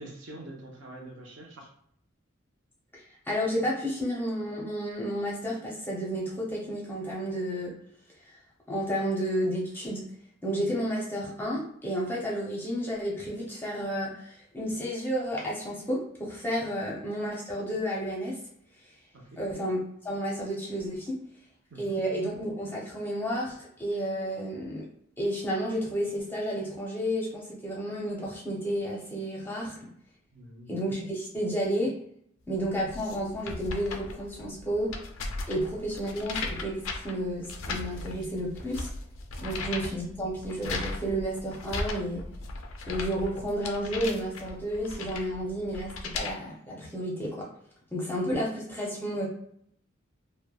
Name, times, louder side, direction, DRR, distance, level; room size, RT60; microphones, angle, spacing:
voice 1, 0.0-1.7 19.1-19.4 21.7-22.0 30.3-30.7 39.4-39.5, right 1 dB, 65° right, 0 dB, 0.7 m, -45 dB
voice 2, 3.3-7.7 8.7-10.0 10.4-18.4 19.4-21.2 21.8-24.8 25.2-29.9 30.7-31.9 32.5-34.9 35.5-38.9 39.4-42.2 42.9-47.5 47.9-49.3, equal, 10° left, -4 dB, 0.6 m, -31 dB
sound 1, 32.6-46.3, left 3 dB, 90° left, 0.4 m, -37 dB
3.1 x 2.1 x 2.2 m, 0.68 s
head